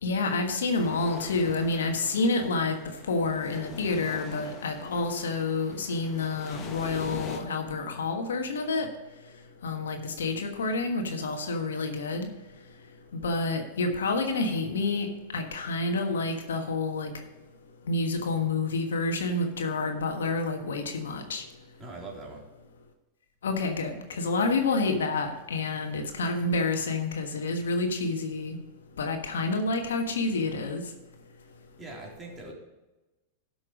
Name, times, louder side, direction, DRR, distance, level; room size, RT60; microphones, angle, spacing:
voice 1, 0.0-2.8 3.1-8.9 9.6-12.3 13.1-15.1 15.3-17.1 17.9-21.4 23.4-28.6 29.0-30.8, left 3 dB, 75° left, 5 dB, 1.4 m, -28 dB
sound 1, 0.8-7.4, left 5 dB, 35° left, 1.5 m, -44 dB
voice 2, 21.8-22.4 31.8-32.5, right 2 dB, 20° right, -2 dB, 3.5 m, -41 dB
12.5 x 5.9 x 4.9 m, 1.1 s
hypercardioid pair, 95°, 0 cm